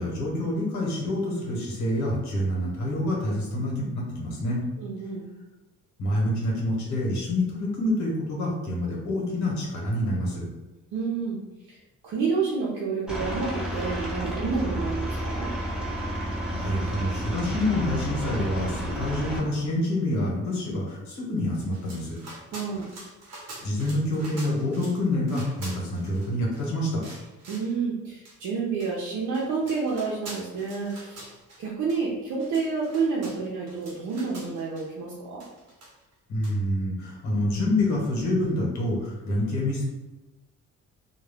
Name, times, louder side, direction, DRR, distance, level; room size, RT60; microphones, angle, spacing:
voice 1, 0.0-4.6 6.0-10.4 16.5-22.2 23.6-27.0 36.3-39.8, left 1 dB, 70° left, -2 dB, 1.1 m, -27 dB
voice 2, 4.8-5.3 10.9-11.4 12.0-15.5 22.5-22.8 27.5-31.3 31.6-35.4, right 4 dB, 80° right, -5 dB, 0.6 m, -29 dB
Aircraft, 13.1-19.4, right 1 dB, 5° right, 1.2 m, -31 dB
sound 1, 21.5-25.0 25.3-26.7 27.0-27.7 28.3-28.4 28.8-28.9 29.3-31.6 31.9-32.0 32.3-34.9 35.4-36.1 36.4-36.6, right 2 dB, 60° right, 1.0 m, -45 dB
2.3 x 2.2 x 3.4 m, 1.1 s
cardioid pair, 90°, 30 cm